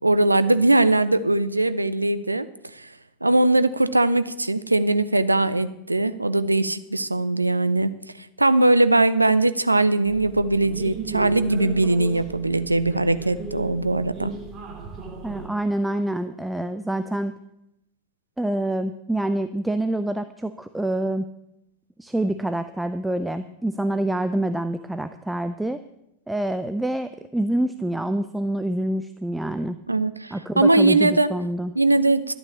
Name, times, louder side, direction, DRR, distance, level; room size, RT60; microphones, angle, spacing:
voice 1, 0.0-2.5 2.7-2.9 3.2-14.3 29.9-31.3 31.8-32.3, right 2 dB, 85° right, 13 dB, 0.6 m, -20 dB
sound 1, 10.1-15.5, right 4 dB, 30° right, 2.3 m, -36 dB
voice 2, 15.2-17.4 18.4-21.3 22.0-25.8 26.3-29.8 30.3-31.7, right 1 dB, 5° right, 10 dB, 0.5 m, -26 dB
12.5 x 8.6 x 7.1 m, 0.82 s
figure-of-eight pair, 90°, 0 cm